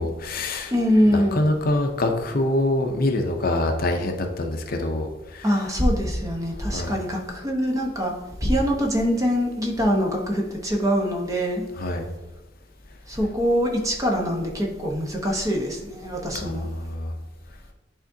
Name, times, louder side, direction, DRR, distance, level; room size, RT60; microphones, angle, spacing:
voice 1, 0.0-0.7 1.1-5.5 6.7-6.9 11.8-12.1 16.4-17.1, left 1 dB, 50° left, 4 dB, 0.6 m, -25 dB
voice 2, 0.7-1.4 5.4-8.1 8.4-11.6 13.1-16.7, equal, 20° right, 0 dB, 0.9 m, -23 dB
10.5 x 3.6 x 2.7 m, 1.1 s
head